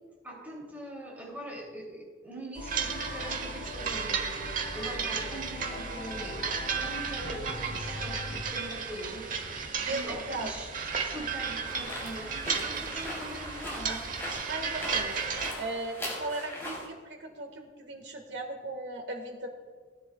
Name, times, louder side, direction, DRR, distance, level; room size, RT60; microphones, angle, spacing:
voice 1, 0.2-4.3 4.6-10.7 11.0-14.0, right 1 dB, 10° right, -3 dB, 2.9 m, -42 dB
sound 1, 2.6-8.4, left 2 dB, 40° left, 1.0 m, -41 dB
sound 2, 2.6-15.5, right 6 dB, 50° right, 1.0 m, -34 dB
voice 2, 9.9-10.5 13.8-14.0 14.4-19.5, right 2 dB, 90° right, 4 dB, 1.7 m, -37 dB
sound 3, 11.7-16.9, left 1 dB, 15° left, 3.6 m, -40 dB
18.0 x 10.0 x 2.4 m, 1.5 s
head